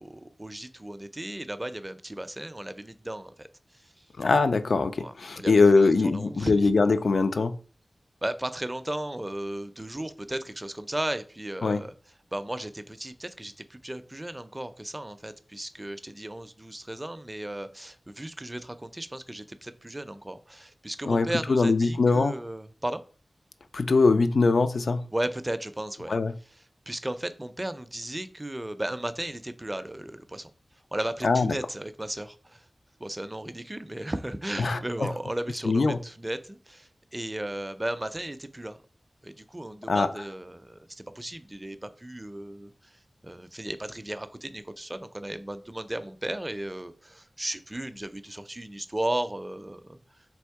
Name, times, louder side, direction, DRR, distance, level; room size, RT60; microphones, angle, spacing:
voice 1, 0.0-4.1 5.0-6.6 8.2-11.9 12.3-23.0 25.1-26.2 26.6-30.5 30.9-32.7 33.0-38.8 39.2-50.0, right 1 dB, 20° right, 11 dB, 0.4 m, -35 dB
voice 2, 4.2-7.6 11.6-11.8 21.0-22.3 23.7-25.0 26.1-26.3 31.2-31.6 34.6-35.1 35.6-36.0 39.9-40.1, left 3 dB, 85° left, 10 dB, 0.3 m, -22 dB
3.5 x 3.0 x 4.6 m, 0.40 s
wide cardioid pair, 80°, 0 cm